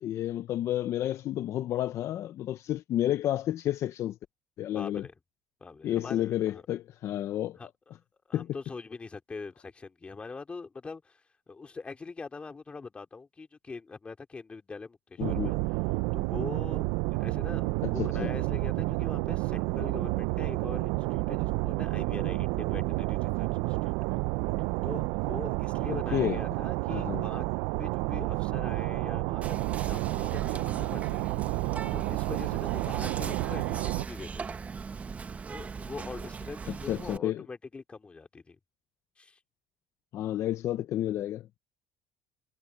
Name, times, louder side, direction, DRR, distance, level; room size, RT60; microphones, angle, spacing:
voice 1, 0.0-4.2 4.6-5.1 5.8-7.6 8.3-8.5 15.2-15.5 17.8-18.3 25.9-26.4 26.9-27.2 36.7-37.5 40.1-41.5, left 12 dB, 45° left, 0.6 m, -31 dB
voice 2, 4.6-5.1 5.6-6.6 7.6-7.7 8.3-15.6 16.1-16.8 17.2-23.9 24.8-27.5 27.8-31.6 31.9-34.6 35.5-38.6 39.2-39.4, left 4 dB, 20° left, 2.6 m, -43 dB
sound 1, 15.2-34.0, right 24 dB, 85° right, 0.4 m, -30 dB
Whispering, 29.4-37.2, right 5 dB, 20° right, 0.8 m, -39 dB
cardioid pair, 140°, 6 cm